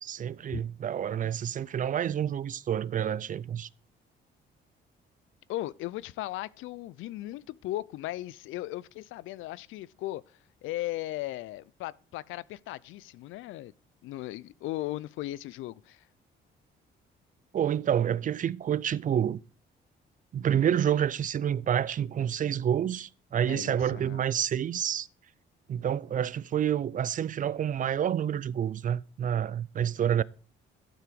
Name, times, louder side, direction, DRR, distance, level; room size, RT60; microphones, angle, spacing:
voice 1, 0.0-3.7 17.5-19.4 20.3-25.1 25.7-30.2, right 9 dB, 40° right, 0.4 m, -28 dB
voice 2, 5.5-13.7 14.0-16.1 23.5-24.2, left 16 dB, 85° left, 0.4 m, -37 dB
12.0 x 4.7 x 5.0 m
cardioid pair, 90°, 20 cm